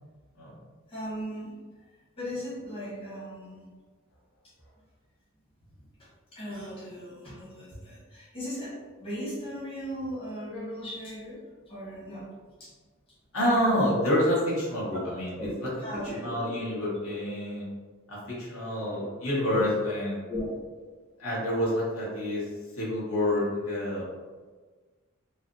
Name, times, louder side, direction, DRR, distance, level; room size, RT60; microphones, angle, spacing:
voice 1, 0.9-1.5 2.2-3.7 5.7-5.8 6.3-11.4 11.7-12.3 12.6-12.7 14.9-15.0 15.3-15.5 15.8-16.3 17.0-17.1 19.5-19.7 20.3-20.5, equal, 25° left, -9 dB, 1.0 m, -37 dB
voice 2, 13.3-15.3 16.2-17.7 18.1-20.3 21.2-22.4 22.8-24.0, left 1 dB, 80° left, -7 dB, 1.1 m, -28 dB
3.1 x 2.1 x 2.6 m, 1.4 s
head